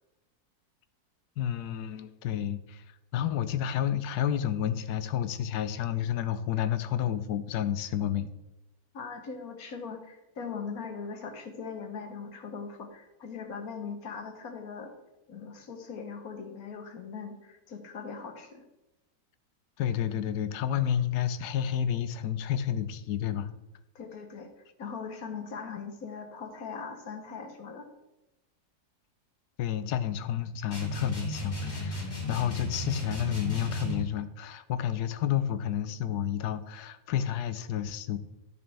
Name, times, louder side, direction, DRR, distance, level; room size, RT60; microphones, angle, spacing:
voice 1, 1.4-2.8 3.1-8.3 19.8-23.5 29.6-38.2, left 10 dB, 85° left, 12 dB, 1.2 m, -30 dB
voice 2, 8.9-14.9 15.3-18.6 23.9-24.5 24.8-27.9, left 5 dB, 65° left, 6 dB, 1.5 m, -40 dB
sound 1, 30.7-34.1, left 1 dB, 45° left, 3.0 m, -34 dB
12.0 x 6.7 x 3.4 m, 0.98 s
omnidirectional pair, 1.6 m